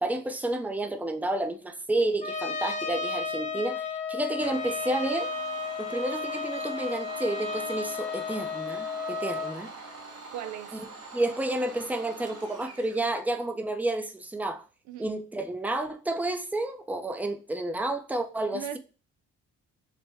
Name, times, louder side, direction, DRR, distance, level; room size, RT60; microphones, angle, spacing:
voice 1, 0.0-5.3 5.8-9.7 10.7-10.9 11.1-14.6 15.0-18.8, right 2 dB, 5° right, 0.6 m, -30 dB
Trumpet, 2.2-9.6, left 4 dB, 25° left, 1.0 m, -33 dB
Domestic sounds home sounds, 4.4-13.1, right 3 dB, 55° right, 1.3 m, -45 dB
voice 2, 10.3-10.8 14.9-15.1 18.5-18.8, right 11 dB, 75° right, 0.5 m, -37 dB
5.9 x 2.1 x 3.4 m
cardioid pair, 90°, 30 cm